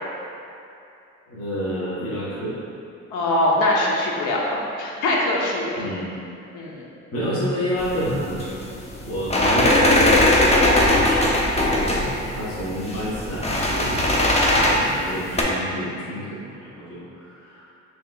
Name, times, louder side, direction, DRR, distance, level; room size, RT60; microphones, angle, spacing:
voice 1, 1.3-2.6 5.8-6.1 7.1-8.7 9.0-10.5 10.8-16.5 16.8-17.7, equal, 50° left, -10 dB, 1.2 m, -29 dB
voice 2, 3.1-5.8 6.5-6.9, left 1 dB, 90° left, -3 dB, 0.8 m, -22 dB
sound 1, 7.8-15.4, left 1 dB, 20° left, 0.6 m, -20 dB
5.7 x 3.1 x 2.3 m, 2.6 s
cardioid pair, 90°, 30 cm